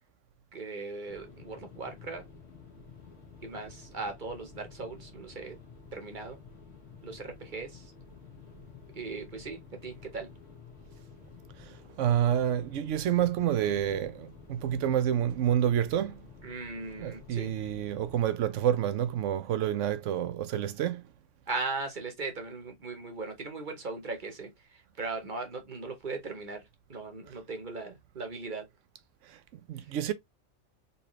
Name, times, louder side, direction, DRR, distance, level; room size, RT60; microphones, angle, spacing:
voice 1, 0.5-2.2 3.4-5.6 5.9-6.4 7.0-7.9 8.9-10.3 16.4-17.5 21.5-28.7 29.8-29.9, right 3 dB, 45° right, 1.0 m, -38 dB
sound 1, 1.1-18.3, left 5 dB, 65° left, 1.7 m, -51 dB
voice 2, 12.0-16.2 17.0-21.0 29.3-30.1, right 10 dB, 85° right, 1.0 m, -28 dB
4.1 x 3.1 x 3.0 m
omnidirectional pair, 1.2 m